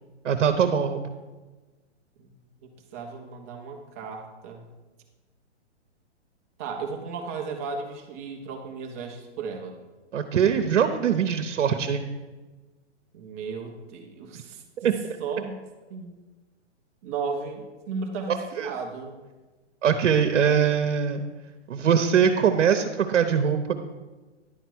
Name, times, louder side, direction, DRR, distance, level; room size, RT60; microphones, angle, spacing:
voice 1, 0.2-1.0 10.1-12.1 14.8-15.2 18.3-18.7 19.8-21.2 21.7-23.7, right 7 dB, 85° right, 7 dB, 0.8 m, -22 dB
voice 2, 2.6-4.7 6.6-9.8 13.1-14.9 15.2-15.6 15.9-16.1 17.0-19.2, right 4 dB, 15° right, 2 dB, 0.4 m, -35 dB
10.5 x 4.5 x 6.0 m, 1.2 s
hypercardioid pair, 155°, 35 cm